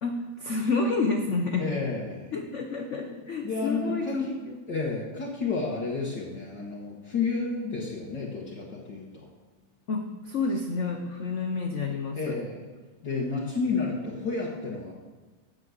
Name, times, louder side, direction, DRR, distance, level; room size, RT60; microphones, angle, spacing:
voice 1, 0.0-1.7 2.3-4.6 9.9-12.4, left 3 dB, 80° left, 4 dB, 0.6 m, -29 dB
voice 2, 1.6-2.3 3.4-4.3 4.7-9.3 12.2-12.6 13.0-14.9, left 4 dB, 55° left, -3 dB, 2.0 m, -31 dB
9.3 x 7.2 x 8.0 m, 1.3 s
omnidirectional pair, 2.4 m